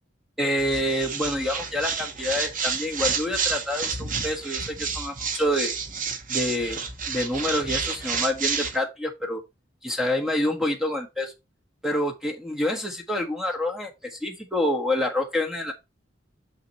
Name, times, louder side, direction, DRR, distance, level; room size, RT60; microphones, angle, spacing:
voice 1, 0.4-5.7 6.3-9.4 9.8-11.3 11.8-15.7, left 1 dB, ahead, 1.4 m, -27 dB
sound 1, 0.6-8.8, right 5 dB, 45° right, 1.3 m, -30 dB
6.7 x 6.2 x 3.0 m
head